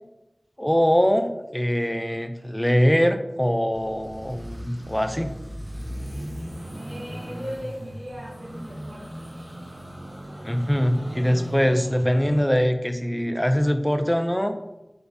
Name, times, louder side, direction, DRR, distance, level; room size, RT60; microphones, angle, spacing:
voice 1, 0.6-5.3 10.4-14.6, equal, 10° left, 8 dB, 0.3 m, -22 dB
sound 1, 3.7-12.4, equal, 45° right, 1.1 m, -37 dB
voice 2, 6.7-9.3, equal, 90° right, -12 dB, 1.4 m, -38 dB
3.9 x 3.4 x 2.7 m, 0.95 s
wide cardioid pair, 50°, 0 cm